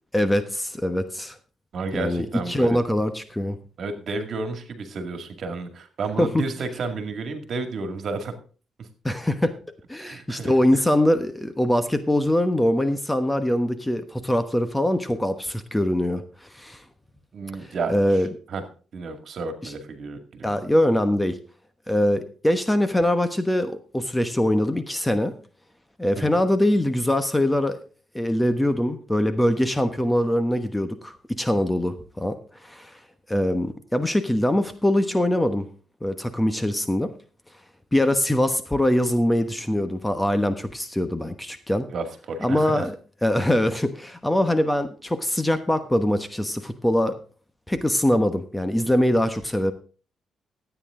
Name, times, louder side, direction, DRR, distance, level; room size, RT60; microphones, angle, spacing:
voice 1, 0.1-1.4 1.9-3.6 6.2-6.4 9.0-9.6 9.9-16.2 16.5-16.8 17.6-18.3 19.6-19.7 20.4-21.4 21.9-25.3 26.0-27.8 28.1-32.9 33.3-35.7 36.0-37.1 37.9-41.9 42.4-42.9 43.2-47.2 47.7-49.7, left 1 dB, 10° left, 10 dB, 1.1 m, -23 dB
voice 2, 1.7-2.8 3.8-8.3 8.8-8.9 10.0-10.8 17.3-18.2 18.5-18.6 18.9-20.5 26.2-26.4 41.9-42.9, right 4 dB, 60° right, 7 dB, 2.2 m, -32 dB
12.5 x 9.1 x 3.7 m, 0.39 s
cardioid pair, 90°, 0 cm